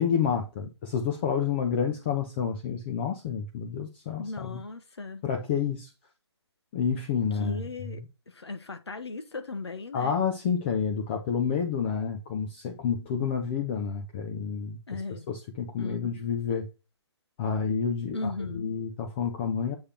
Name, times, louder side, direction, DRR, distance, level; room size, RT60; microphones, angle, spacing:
voice 1, 0.0-4.6 5.2-5.9 6.7-8.1 9.9-16.7 17.4-19.8, left 7 dB, 25° left, 0.8 m, -29 dB
voice 2, 4.2-5.2 7.4-10.2 14.9-15.3 15.8-16.1 18.1-18.7, left 3 dB, 65° left, 1.2 m, -37 dB
7.4 x 4.9 x 2.8 m
figure-of-eight pair, 140°, 14 cm